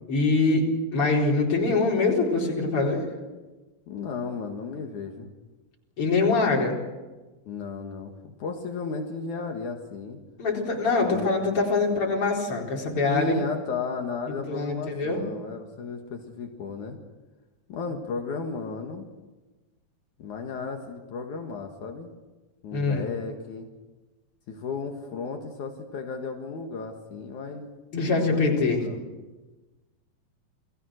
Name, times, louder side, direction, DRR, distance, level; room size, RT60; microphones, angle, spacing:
voice 1, 0.1-3.1 6.0-6.7 10.4-13.4 14.3-15.2 22.7-23.1 27.9-28.9, left 3 dB, 40° left, -1 dB, 5.1 m, -24 dB
voice 2, 3.9-5.3 7.5-10.2 10.9-11.3 13.1-17.0 17.7-19.1 20.2-22.1 22.6-23.7 24.5-29.0, left 4 dB, 65° left, 3 dB, 3.0 m, -34 dB
29.5 x 20.0 x 6.5 m, 1.2 s
omnidirectional pair, 4.0 m